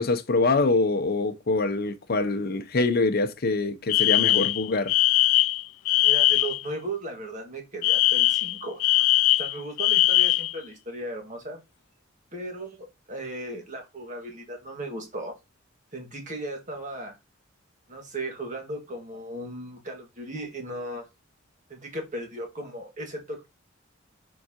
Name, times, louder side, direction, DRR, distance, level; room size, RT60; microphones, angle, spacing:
voice 1, 0.0-4.9, left 3 dB, 50° left, 0.7 m, -24 dB
Alarm, 3.9-6.6 7.8-10.6, left 17 dB, 90° left, 0.3 m, -21 dB
voice 2, 6.0-8.8 9.4-11.6 12.3-15.3 15.9-17.2 17.9-21.1 21.7-23.5, right 1 dB, 35° right, 1.8 m, -36 dB
7.0 x 4.6 x 2.9 m
head